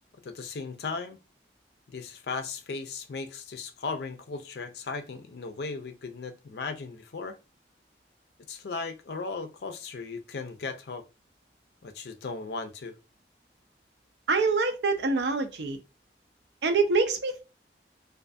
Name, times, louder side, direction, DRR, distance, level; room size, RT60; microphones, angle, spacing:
voice 1, 0.2-1.2 1.9-7.4 8.5-11.0 11.8-12.9, left 4 dB, 70° left, 0.4 m, -36 dB
voice 2, 14.3-15.8 16.6-17.4, right 4 dB, 80° right, 0.5 m, -25 dB
2.4 x 2.3 x 2.5 m
head